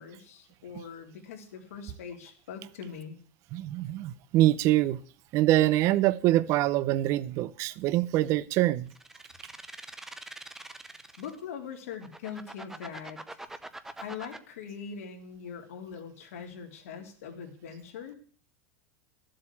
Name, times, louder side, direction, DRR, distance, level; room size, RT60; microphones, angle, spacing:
voice 1, 0.0-3.2 9.7-10.1 11.2-13.4 14.0-18.2, left 7 dB, 90° left, 3.4 m, -42 dB
voice 2, 3.5-5.0 5.3-8.9, right 15 dB, 40° right, 0.7 m, -24 dB
sound 1, 8.9-11.4 11.9-14.4, right 2 dB, 5° right, 0.8 m, -44 dB
13.0 x 7.7 x 8.5 m
supercardioid pair, 145°, 7 cm